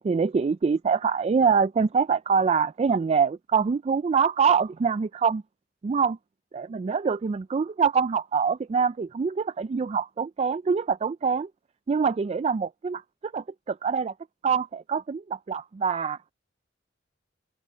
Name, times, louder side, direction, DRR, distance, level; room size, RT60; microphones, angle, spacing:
voice 1, 0.0-5.4 5.8-6.2 6.5-11.5 11.9-14.1 14.4-16.2, right 5 dB, 35° right, 0.3 m, -25 dB
head